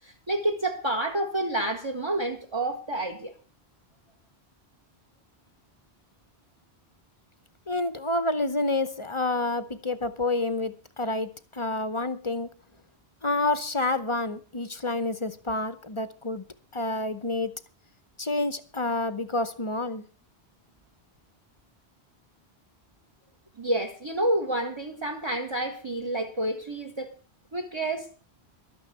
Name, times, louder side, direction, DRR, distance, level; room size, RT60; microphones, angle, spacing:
voice 1, 0.0-3.3 23.6-27.1 27.5-28.2, right 1 dB, 25° right, 1.2 m, -29 dB
voice 2, 7.7-12.5 13.2-16.4 16.7-17.5 18.2-20.0, left 2 dB, 30° left, 0.8 m, -28 dB
12.5 x 9.3 x 6.7 m
omnidirectional pair, 1.1 m